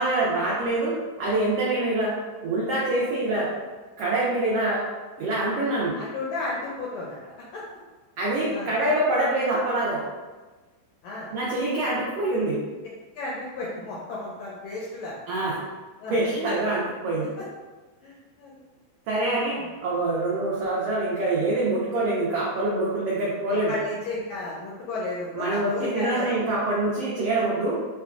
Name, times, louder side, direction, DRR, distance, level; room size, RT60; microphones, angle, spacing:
voice 1, 0.0-2.1 2.4-3.5 4.0-4.8 5.2-6.0 8.2-10.0 11.3-12.6 15.3-15.5 16.1-17.3 19.1-23.8 25.3-27.8, right 2 dB, 85° right, -6 dB, 1.3 m, -25 dB
voice 2, 6.0-7.6 8.5-8.7 11.0-11.3 13.1-15.2 16.0-16.2 17.4-17.5 18.0-18.5 19.6-19.7 23.7-26.3, left 2 dB, 80° left, -5 dB, 1.5 m, -33 dB
5.4 x 2.2 x 2.3 m, 1.3 s
omnidirectional pair, 3.5 m